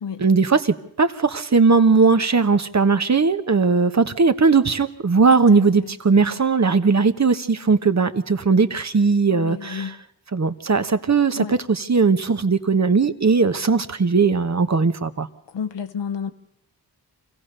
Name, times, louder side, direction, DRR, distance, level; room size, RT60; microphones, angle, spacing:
voice 1, 0.2-10.0 10.3-15.3, right 4 dB, 40° right, 10 dB, 1.2 m, -18 dB
voice 2, 9.3-9.9 11.4-11.5 15.5-16.3, left 7 dB, 90° left, 9 dB, 1.2 m, -30 dB
25.5 x 15.5 x 6.8 m, 0.76 s
cardioid pair, 55°, 41 cm